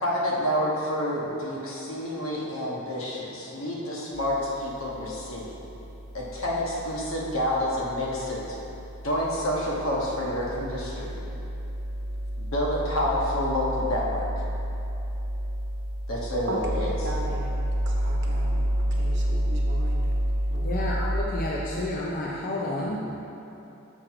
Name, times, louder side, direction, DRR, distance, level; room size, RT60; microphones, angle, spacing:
voice 1, 0.0-5.5 6.1-8.6 9.0-11.2 12.4-14.4 16.1-16.9, left 1 dB, 85° left, -4 dB, 1.3 m, -28 dB
sound 1, 4.1-21.2, equal, 35° right, 1.0 m, -30 dB
voice 2, 16.4-17.5 17.8-20.1 20.5-20.9, right 2 dB, 60° right, -2 dB, 1.0 m, -38 dB
voice 3, 20.6-23.1, left 1 dB, 45° left, -4 dB, 0.6 m, -30 dB
6.3 x 4.6 x 4.9 m, 2.9 s
head